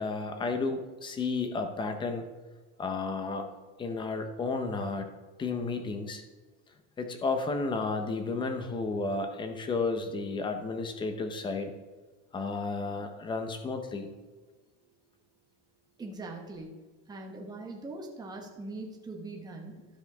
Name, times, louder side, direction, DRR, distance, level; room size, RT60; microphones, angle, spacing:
voice 1, 0.0-2.3 2.8-3.5 3.8-5.1 5.4-6.2 7.0-11.7 12.3-14.1, left 3 dB, 15° left, 7 dB, 0.7 m, -32 dB
voice 2, 16.0-16.8 17.1-19.9, right 2 dB, 10° right, 1 dB, 1.1 m, -41 dB
12.5 x 6.8 x 3.5 m, 1.3 s
cardioid pair, 175°, 35 cm